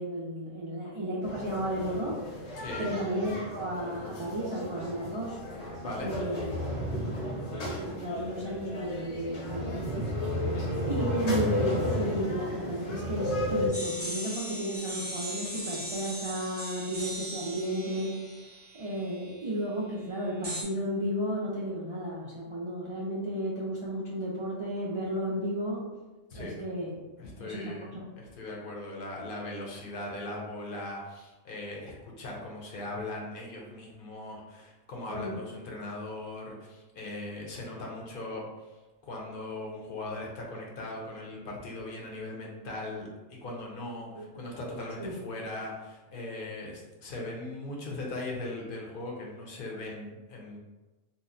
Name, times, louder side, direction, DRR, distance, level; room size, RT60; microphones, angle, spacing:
voice 1, 0.0-2.2 2.8-5.4 6.0-6.5 6.9-7.3 7.7-10.1 10.8-18.2 18.7-25.8 26.3-27.0 27.4-28.0 35.1-35.4 44.1-44.2 45.0-45.2, equal, 55° right, -7 dB, 0.3 m, -33 dB
sound 1, 1.2-13.7, left 1 dB, 75° left, 1.1 m, -33 dB
voice 2, 2.6-2.9 5.8-6.1 10.4-10.7 26.3-26.5 27.2-38.7 39.0-43.1 43.4-50.6, left 2 dB, 55° left, -2 dB, 0.8 m, -39 dB
sound 2, 13.7-19.4 20.4-20.6, right 1 dB, 10° right, 0.6 m, -39 dB
2.7 x 2.0 x 3.8 m, 1.1 s
omnidirectional pair, 1.2 m